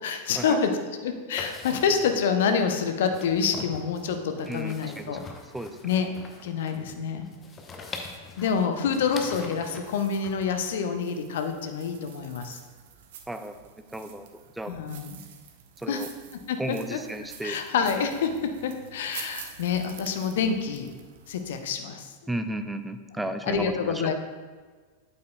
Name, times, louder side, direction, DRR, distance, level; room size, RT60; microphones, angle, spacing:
voice 1, 0.0-0.7 1.0-5.2 5.8-6.1 6.4-7.3 8.4-12.6 14.7-15.2 15.9-16.1 16.5-17.0 17.4-20.9 21.3-22.1 23.5-24.1, left 6 dB, 55° left, 7 dB, 0.6 m, -27 dB
sound 1, 1.3-10.8, left 4 dB, 20° left, 0.8 m, -44 dB
voice 2, 4.5-5.2 5.5-5.8 13.3-13.6 13.9-14.3 14.6-14.7 15.8-16.1 16.6-17.6 22.3-24.1, right 1 dB, 5° right, 8 dB, 0.4 m, -34 dB
sound 2, 9.8-21.7, right 8 dB, 55° right, 0.6 m, -48 dB
8.4 x 7.8 x 2.3 m, 1.5 s
figure-of-eight pair, 90°, 0 cm